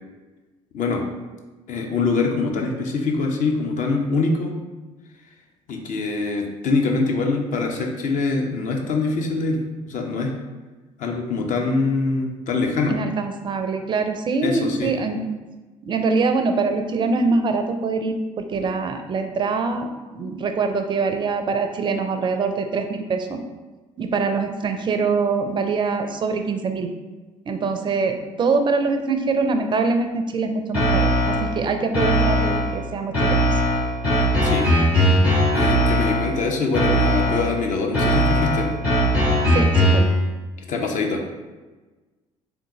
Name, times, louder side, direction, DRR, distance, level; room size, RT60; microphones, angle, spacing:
voice 1, 1.7-4.5 5.7-9.6 9.8-10.3 11.0-12.9 14.4-14.9 34.4-34.7 35.5-38.7 40.7-41.2, left 3 dB, 45° left, 2 dB, 0.6 m, -24 dB
voice 2, 12.9-15.2 15.9-19.9 20.1-23.4 24.0-26.9 27.5-33.5 39.5-40.1, right 4 dB, 25° right, 6 dB, 0.4 m, -24 dB
sound 1, 30.7-31.6 31.9-32.8 33.1-36.4 36.7-37.6 37.9-40.2, equal, 80° left, 1.5 m, -19 dB
3.5 x 2.5 x 2.9 m, 1.2 s
figure-of-eight pair, 50°, 18 cm